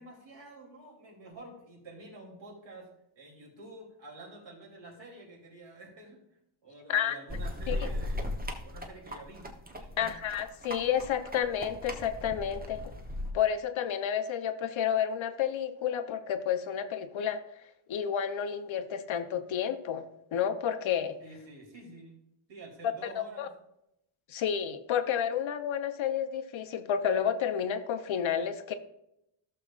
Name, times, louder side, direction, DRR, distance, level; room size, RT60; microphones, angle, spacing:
voice 1, 0.0-6.2 6.6-8.2 8.6-9.5 9.8-10.2 21.2-22.2 22.5-23.5, right 2 dB, 60° right, -2 dB, 3.2 m, -49 dB
sound 1, 7.3-13.3, left 1 dB, 20° right, 0.9 m, -37 dB
voice 2, 10.0-12.8 13.3-17.4 17.9-20.0 20.3-21.1 23.2-23.5 24.3-28.7, left 8 dB, 70° left, 9 dB, 0.9 m, -30 dB
15.0 x 6.6 x 2.5 m, 0.81 s
wide cardioid pair, 155°, 48 cm